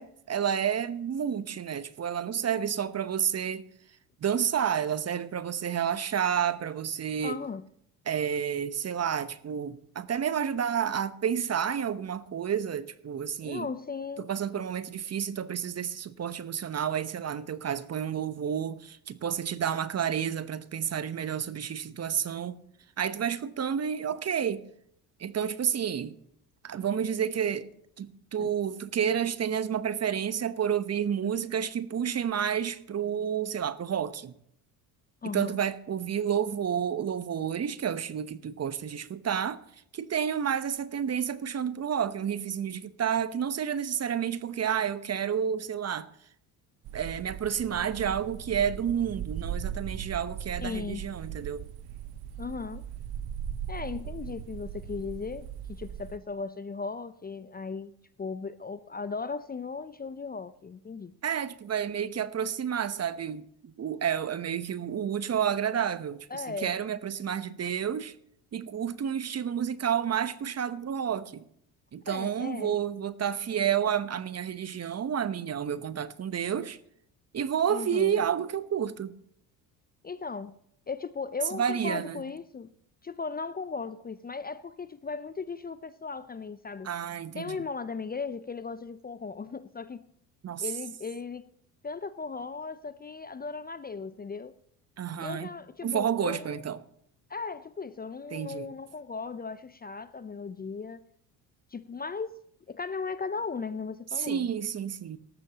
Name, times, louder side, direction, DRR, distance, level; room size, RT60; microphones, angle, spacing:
voice 1, 0.0-3.7 4.2-7.4 8.1-13.7 14.2-22.6 23.0-24.6 25.2-26.1 26.6-27.7 28.0-34.3 35.3-39.6 39.9-46.1 46.9-51.7 61.2-68.1 68.5-71.4 71.9-76.8 77.3-79.1 81.5-82.2 86.8-87.6 90.4-90.7 95.0-95.5 95.8-96.8 98.3-98.7 104.2-105.2, right 8 dB, 35° right, 1.0 m, -30 dB
voice 2, 7.2-7.6 13.4-14.3 28.4-28.5 35.2-35.5 50.6-51.0 52.4-52.8 53.7-57.9 58.2-61.1 66.3-66.8 72.1-72.7 77.7-78.2 80.0-80.5 80.9-82.7 83.0-86.9 87.4-90.0 90.6-91.4 91.8-94.5 95.2-96.6 97.3-101.0 101.7-102.4 102.7-104.5, left 4 dB, 20° left, 0.7 m, -37 dB
sound 1, 46.8-56.2, right 9 dB, 50° right, 1.1 m, -38 dB
19.0 x 13.5 x 3.0 m
hypercardioid pair, 60°, 47 cm